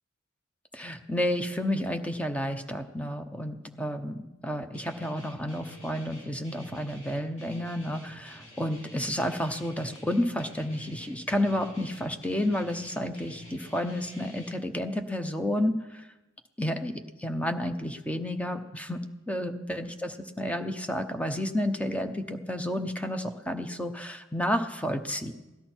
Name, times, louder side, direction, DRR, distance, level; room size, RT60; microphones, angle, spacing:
voice 1, 0.7-16.0 16.6-19.0 19.3-25.3, left 1 dB, 5° left, 6 dB, 0.8 m, -31 dB
Guitar, 4.7-14.5, equal, 35° left, 3.1 m, -50 dB
17.5 x 12.0 x 4.4 m, 1.0 s
head